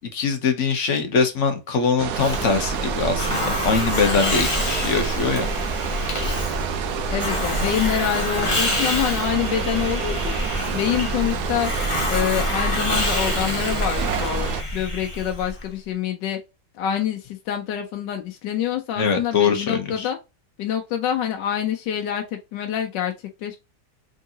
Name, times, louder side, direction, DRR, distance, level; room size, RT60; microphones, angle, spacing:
voice 1, 0.1-5.5 19.0-20.1, left 5 dB, 55° left, 1.0 m, -22 dB
sound 1, 2.0-14.6, right 7 dB, 70° right, 1.1 m, -29 dB
Hiss, 2.1-15.6, left 1 dB, 25° left, 0.8 m, -27 dB
voice 2, 7.1-10.3 10.7-11.7 12.1-16.4 16.7-20.2 20.6-23.1 23.4-23.6, left 9 dB, 90° left, 1.3 m, -26 dB
3.7 x 3.6 x 2.7 m
omnidirectional pair, 1.9 m